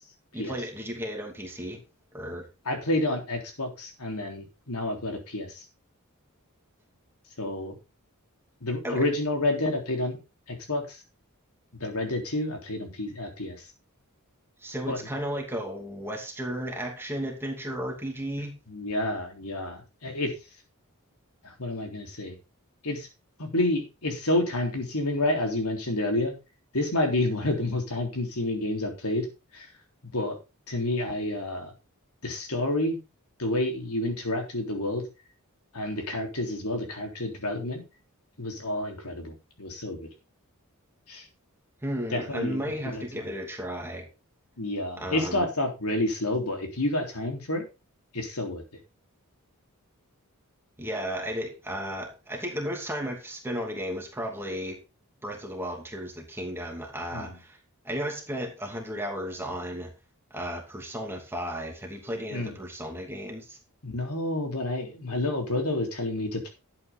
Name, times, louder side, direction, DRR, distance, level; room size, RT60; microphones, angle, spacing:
voice 1, 0.3-1.8 2.1-2.5 8.8-9.1 14.6-18.6 41.8-44.1 45.0-45.5 50.8-54.8 55.2-57.6 57.8-59.9 60.3-63.6, equal, 10° right, 2.7 m, -34 dB
voice 2, 2.7-5.6 7.4-7.7 8.6-10.2 10.5-11.0 11.7-13.6 14.9-15.0 18.7-20.3 21.4-22.4 22.8-23.1 23.4-26.3 26.7-29.3 29.5-29.7 30.1-30.4 30.7-31.7 32.2-33.0 33.4-35.0 35.7-37.8 38.4-40.1 41.1-41.3 42.1-43.3 44.6-47.6 48.1-48.6 57.1-57.3 62.3-62.6 63.8-66.5, left 1 dB, 80° left, 3.6 m, -29 dB
12.0 x 8.6 x 3.8 m
head